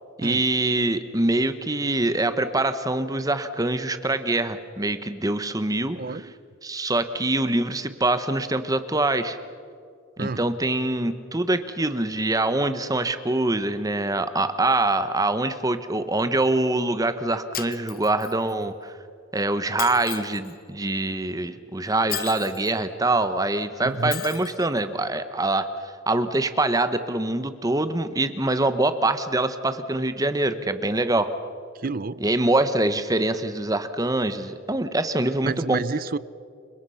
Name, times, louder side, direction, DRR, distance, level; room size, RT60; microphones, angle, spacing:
voice 1, 0.2-6.2 6.6-9.4 10.2-19.0 19.3-31.3 32.2-35.8, right 2 dB, 20° right, 1.1 m, -24 dB
voice 2, 5.9-6.3 10.2-10.4 23.8-24.2 31.7-32.2 35.4-36.2, right 4 dB, 45° right, 0.6 m, -29 dB
Shatter, 17.5-18.5 19.8-20.5 22.1-22.7 24.1-24.7, left 12 dB, 45° left, 1.1 m, -35 dB
29.5 x 25.0 x 5.7 m
head